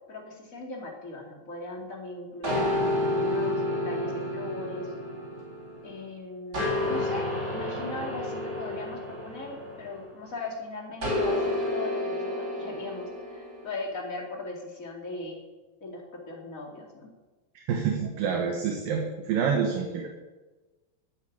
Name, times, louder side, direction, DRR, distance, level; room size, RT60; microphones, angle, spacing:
voice 1, 0.1-2.6 3.0-4.9 5.8-15.4 15.8-17.1, left 2 dB, 25° left, 0 dB, 2.1 m, -39 dB
sound 1, 2.4-6.0 6.5-10.3 11.0-13.7, left 1 dB, 25° right, 4.1 m, -30 dB
voice 2, 17.6-20.1, right 6 dB, 65° right, 2 dB, 2.8 m, -27 dB
12.5 x 9.3 x 8.7 m, 1.2 s
omnidirectional pair, 4.8 m